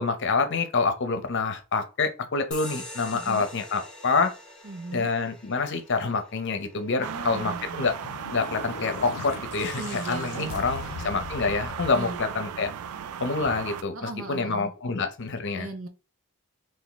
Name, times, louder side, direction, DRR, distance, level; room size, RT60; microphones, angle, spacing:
voice 1, 0.0-4.3 4.9-7.9 8.3-12.7 13.2-15.7, left 4 dB, 55° left, 0.7 m, -27 dB
sound 1, 2.5-9.6, left 1 dB, 5° left, 0.9 m, -45 dB
voice 2, 3.1-3.5 4.6-5.1 7.0-7.9 9.7-11.1 11.9-12.3 13.9-14.7 15.5-15.9, right 2 dB, 65° right, 0.8 m, -38 dB
sound 2, 7.0-13.8, right 8 dB, 85° right, 0.3 m, -36 dB
sound 3, 7.6-13.0, left 7 dB, 90° left, 0.3 m, -40 dB
3.5 x 2.5 x 3.9 m
head